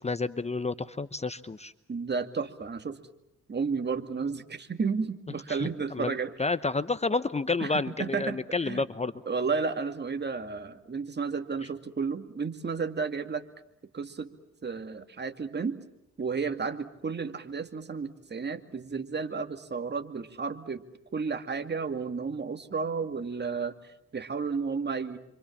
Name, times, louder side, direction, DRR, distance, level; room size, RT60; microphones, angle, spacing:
voice 1, 0.0-1.7 5.6-9.1, left 3 dB, 20° left, 14 dB, 0.9 m, -30 dB
voice 2, 1.9-3.0 3.5-6.4 7.6-8.9 9.3-13.4 13.9-14.3 14.6-15.8 16.2-20.8 21.1-25.2, right 5 dB, 35° right, 8 dB, 2.3 m, -32 dB
28.0 x 26.0 x 7.3 m, 0.82 s
cardioid pair, 80°, 29 cm